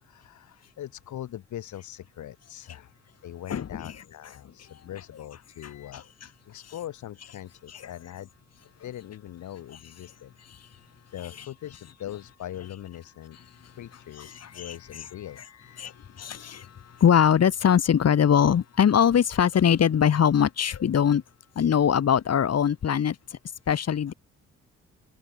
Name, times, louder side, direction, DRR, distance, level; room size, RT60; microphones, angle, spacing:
voice 1, 0.0-2.9 3.2-6.0 6.5-8.3 8.8-10.3 11.1-13.4 13.8-15.8, left 12 dB, 75° left, 5.5 m, -41 dB
voice 2, 3.5-3.9 5.9-6.0 14.2-14.7 15.8-21.2 21.5-23.4 23.7-24.1, left 8 dB, 55° left, 6.3 m, -22 dB
cardioid pair, 90°, 30 cm